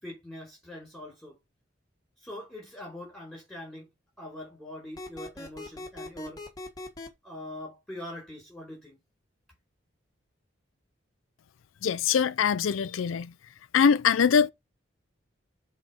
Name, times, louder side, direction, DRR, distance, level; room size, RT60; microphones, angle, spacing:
voice 1, 0.0-1.4 2.2-3.9 4.2-6.5 7.2-9.0, left 1 dB, ahead, 4.8 m, -43 dB
sound 1, 5.0-7.1, left 2 dB, 20° left, 1.5 m, -40 dB
voice 2, 11.8-13.3 13.7-14.5, left 7 dB, 85° left, 0.4 m, -23 dB
7.3 x 4.2 x 5.7 m
head